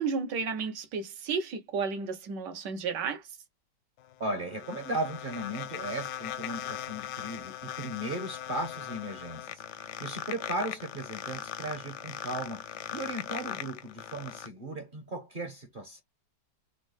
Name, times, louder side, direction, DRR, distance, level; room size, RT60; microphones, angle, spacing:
voice 1, 0.0-3.2, right 5 dB, 85° right, 1.5 m, -32 dB
sound 1, 4.0-14.5, left 11 dB, 80° left, 1.2 m, -39 dB
voice 2, 4.2-16.0, right 1 dB, 50° right, 0.6 m, -36 dB
4.2 x 2.0 x 3.1 m
omnidirectional pair, 1.8 m